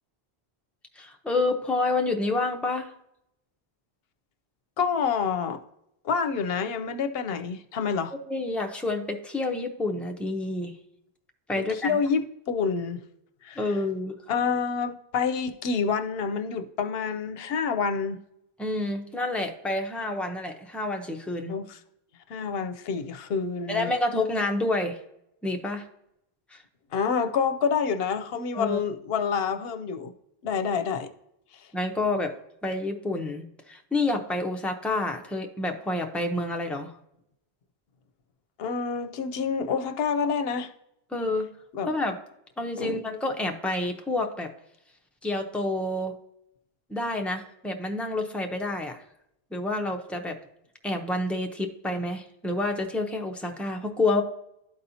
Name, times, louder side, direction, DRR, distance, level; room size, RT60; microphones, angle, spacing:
voice 1, 1.0-2.9 8.3-10.7 11.5-12.0 13.6-14.1 18.6-21.5 23.7-25.0 25.4-25.8 26.5-26.6 28.5-28.8 31.7-32.3 32.6-36.9 41.1-41.5 41.9-42.2 42.6-44.5 45.2-46.1 46.9-49.0 49.5-50.4 50.8-54.2, left 2 dB, ahead, 3 dB, 0.5 m, -28 dB
voice 2, 4.8-5.6 6.0-8.1 11.6-13.0 13.4-13.6 14.3-18.2 21.5-21.8 22.3-23.9 26.9-30.1 30.4-31.1 31.5-31.7 38.6-40.7 41.7-41.9 42.8-43.0, left 6 dB, 70° left, 9 dB, 0.8 m, -28 dB
12.0 x 4.2 x 2.7 m, 0.79 s
omnidirectional pair, 1.1 m